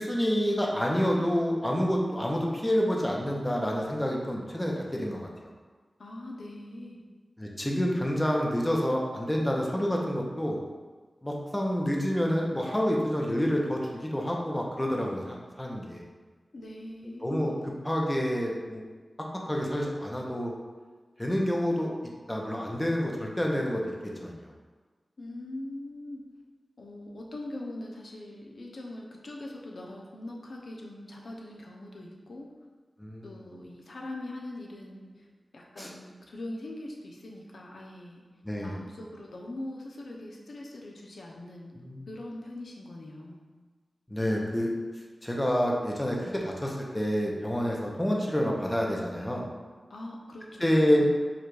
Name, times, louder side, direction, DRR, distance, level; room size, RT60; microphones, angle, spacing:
voice 1, 0.0-5.5 7.4-10.6 11.2-16.0 17.2-17.5 17.8-18.8 19.4-20.5 21.2-21.9 22.3-23.8 24.2-24.5 33.0-33.2 35.8-35.9 38.4-38.8 41.8-42.1 44.1-44.7 45.2-49.4 50.6-51.0, equal, 15° left, -1 dB, 0.7 m, -28 dB
voice 2, 6.0-7.0 16.5-17.6 25.2-26.2 26.8-32.5 33.2-35.3 35.5-38.2 38.6-43.4 49.9-51.0, left 1 dB, 75° left, -1 dB, 0.6 m, -42 dB
4.8 x 2.3 x 4.7 m, 1.4 s
wide cardioid pair, 80°, 0 cm